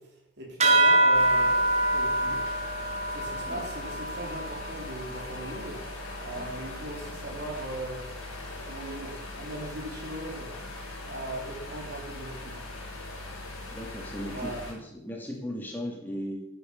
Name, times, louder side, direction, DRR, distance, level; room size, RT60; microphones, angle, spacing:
voice 1, 0.0-2.6 3.1-8.1 8.6-10.6 11.0-12.6 14.3-14.6, right 2 dB, 55° right, -1 dB, 3.2 m, -39 dB
sound 1, 0.6-5.5, right 2 dB, 30° right, 1.3 m, -25 dB
sound 2, 1.1-14.7, left 2 dB, 80° left, 4.0 m, -40 dB
voice 2, 13.7-16.5, equal, 10° left, -1 dB, 2.5 m, -37 dB
10.0 x 9.4 x 5.4 m, 0.81 s
head